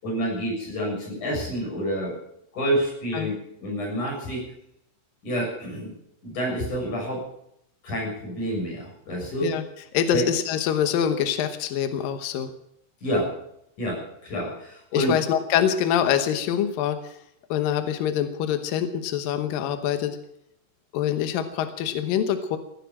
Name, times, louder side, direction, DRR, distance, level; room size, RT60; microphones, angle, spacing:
voice 1, 0.0-2.2 2.5-3.3 3.6-4.4 5.2-5.9 6.2-7.3 7.8-9.5 10.1-10.3 13.0-13.3 13.8-15.2, equal, 40° left, -2 dB, 8.1 m, -28 dB
voice 2, 9.9-12.5 14.9-17.2 17.5-20.2 20.9-22.6, left 9 dB, 80° left, 9 dB, 2.0 m, -25 dB
16.5 x 11.0 x 7.6 m, 0.77 s
omnidirectional pair, 5.6 m